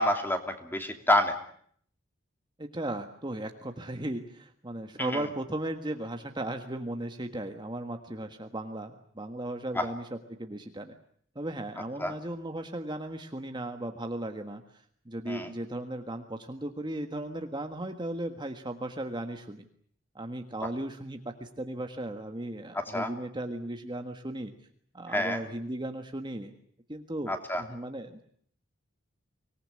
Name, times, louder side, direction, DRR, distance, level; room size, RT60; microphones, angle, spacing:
voice 1, 0.0-1.4 5.0-5.1 9.7-9.8 12.0-12.1 15.3-15.5 22.7-23.1 25.1-25.4 27.3-27.6, left 1 dB, 10° left, 6 dB, 2.8 m, -28 dB
voice 2, 2.6-10.1 10.4-11.0 11.3-19.7 20.1-24.5 24.9-26.5 26.9-28.2, right 1 dB, 25° right, 6 dB, 1.5 m, -36 dB
25.0 x 19.0 x 9.8 m, 0.64 s
head